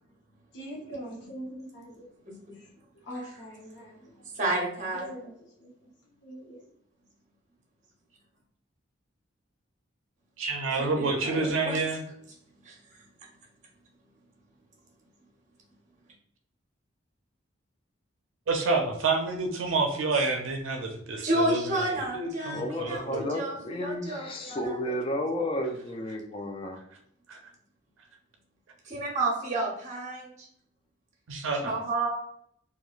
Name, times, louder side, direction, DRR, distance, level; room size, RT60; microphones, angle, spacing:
voice 1, 0.5-2.0 2.5-2.7 3.0-4.2 4.9-6.6, equal, 60° left, 0.8 m, -43 dB
voice 2, 4.1-5.1 10.7-11.8 12.6-13.0 20.1-20.3 21.2-24.9 28.8-30.5 31.6-32.1, right 2 dB, 40° right, 0.8 m, -31 dB
voice 3, 10.4-12.0 18.5-21.8 22.1-23.2 27.3-27.4 31.3-31.7, right 3 dB, 80° right, 0.4 m, -28 dB
voice 4, 22.5-26.8, left 1 dB, 30° left, 0.3 m, -32 dB
3.0 x 2.3 x 2.3 m
head